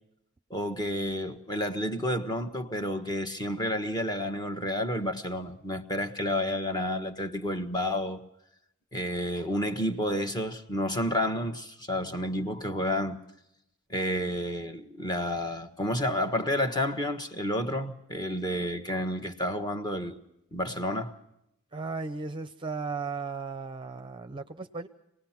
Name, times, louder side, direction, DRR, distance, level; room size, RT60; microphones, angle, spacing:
voice 1, 0.5-8.2 8.9-13.2 13.9-20.2 20.5-21.1, left 1 dB, 20° left, 1.4 m, -30 dB
voice 2, 21.7-24.9, right 4 dB, 25° right, 0.7 m, -35 dB
26.0 x 19.0 x 5.9 m
head